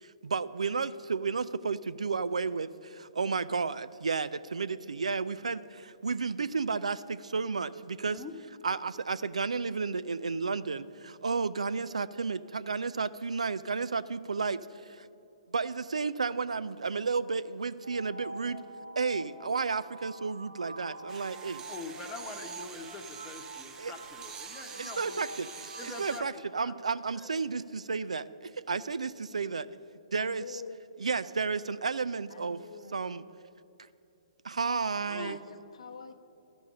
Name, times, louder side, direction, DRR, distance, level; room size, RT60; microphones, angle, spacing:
voice 1, 0.0-8.2 8.6-15.1 15.5-21.6 23.8-23.9 24.8-29.7 30.1-30.6 31.0-32.6 32.9-33.2 34.4-35.4, right 4 dB, 75° right, 15 dB, 0.4 m, -32 dB
sound 1, 17.8-26.3, right 2 dB, 55° right, 1.6 m, -46 dB
sound 2, 21.1-26.2, right 6 dB, 15° right, 0.7 m, -46 dB
voice 2, 21.7-25.2 25.8-26.3 26.6-26.7 27.1-27.3 28.7-28.9 35.1-35.4, left 3 dB, 15° left, 4 dB, 1.0 m, -44 dB
voice 3, 30.2-31.0 32.3-33.3 35.1-36.1, left 5 dB, 65° left, 7 dB, 0.8 m, -46 dB
13.5 x 5.3 x 8.8 m, 2.7 s
figure-of-eight pair, 125°, 4 cm